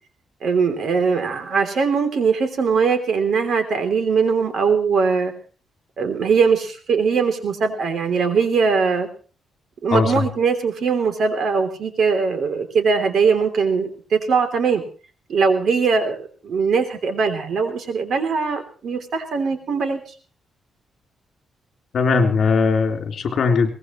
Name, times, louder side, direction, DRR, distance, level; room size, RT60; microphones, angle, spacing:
voice 1, 0.4-5.3 6.0-9.1 9.8-14.8 15.3-20.0, right 5 dB, 60° right, 6 dB, 3.3 m, -21 dB
voice 2, 9.9-10.2 21.9-23.7, left 4 dB, 55° left, 3 dB, 3.6 m, -19 dB
22.5 x 19.0 x 3.2 m, 0.38 s
cardioid pair, 135°, 0 cm